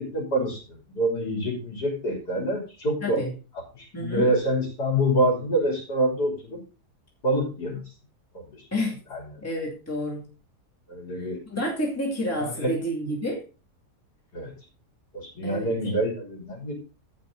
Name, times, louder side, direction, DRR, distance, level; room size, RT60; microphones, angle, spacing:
voice 1, 0.0-3.2 3.5-6.6 7.2-7.8 8.3-8.7 9.1-9.2 10.9-11.4 12.4-12.7 14.3-14.5 15.1-16.7, right 1 dB, 75° left, 0 dB, 3.7 m, -26 dB
voice 2, 3.0-3.3 3.9-4.3 8.7-9.0 9.4-10.2 11.2-13.4 15.4-16.0, left 1 dB, 10° left, -1 dB, 2.3 m, -30 dB
16.0 x 5.5 x 3.8 m, 0.33 s
omnidirectional pair, 1.7 m